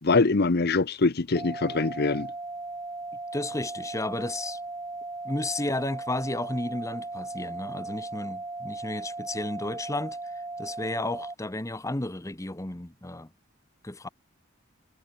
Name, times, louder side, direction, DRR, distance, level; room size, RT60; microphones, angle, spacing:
voice 1, 0.0-2.3, left 3 dB, 50° left, 0.8 m, -23 dB
sound 1, 1.3-11.3, right 2 dB, 15° right, 1.7 m, -37 dB
voice 2, 3.3-4.6 5.2-10.2 10.6-13.3 13.8-14.1, left 2 dB, 15° left, 1.0 m, -33 dB
head